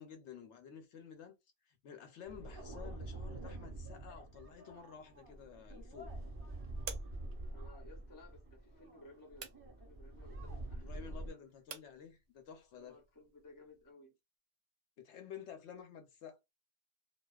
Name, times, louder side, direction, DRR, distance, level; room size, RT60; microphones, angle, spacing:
voice 1, 0.0-1.3 1.6-6.1 10.7-13.0 15.0-16.4, left 8 dB, 75° left, 0.9 m, -52 dB
sound 1, 2.2-11.3, right 1 dB, 20° right, 0.8 m, -46 dB
sound 2, 4.7-13.9, right 6 dB, 65° right, 0.8 m, -55 dB
voice 2, 7.5-9.5 9.8-11.5 12.7-14.1, left 2 dB, 20° left, 0.6 m, -58 dB
2.5 x 2.2 x 2.3 m
omnidirectional pair, 1.2 m